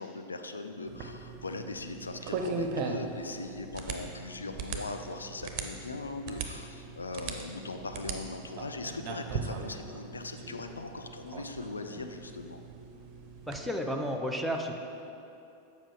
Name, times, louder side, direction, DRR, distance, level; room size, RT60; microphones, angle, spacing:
voice 1, 0.0-12.6, left 3 dB, 75° left, 6 dB, 0.5 m, -40 dB
sound 1, 0.9-13.6, right 4 dB, 40° right, 0.7 m, -39 dB
voice 2, 13.5-14.8, equal, ahead, 2 dB, 0.6 m, -32 dB
7.5 x 5.1 x 4.8 m, 2.7 s
figure-of-eight pair, 90°, 0 cm